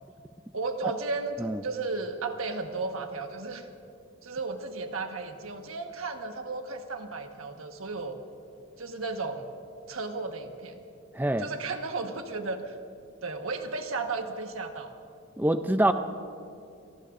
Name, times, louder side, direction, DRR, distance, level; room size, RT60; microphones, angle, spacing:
voice 1, 0.5-3.7 4.2-8.2 8.8-9.5 9.9-10.8 11.4-12.7 13.2-14.9, right 3 dB, 85° right, 5 dB, 1.3 m, -34 dB
voice 2, 11.1-11.5 15.4-15.9, right 1 dB, 10° right, 8 dB, 0.4 m, -25 dB
29.0 x 19.0 x 2.6 m, 2.5 s
head